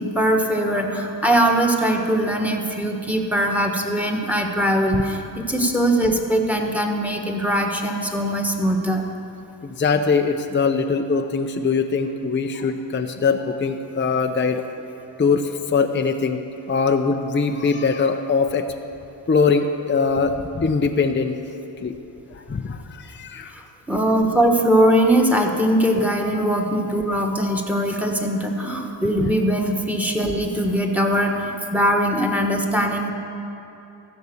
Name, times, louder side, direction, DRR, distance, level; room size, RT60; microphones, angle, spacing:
voice 1, 0.0-9.0 23.5-33.1, right 1 dB, 5° right, 2 dB, 1.4 m, -21 dB
voice 2, 9.6-14.7 15.2-16.4 16.7-18.7 19.3-21.4 21.8-22.0 22.3-23.5 24.0-24.2 25.9-26.0 29.2-29.3, left 5 dB, 25° left, 5 dB, 0.6 m, -22 dB
15.0 x 5.9 x 7.0 m, 3.0 s
cardioid pair, 65°, 47 cm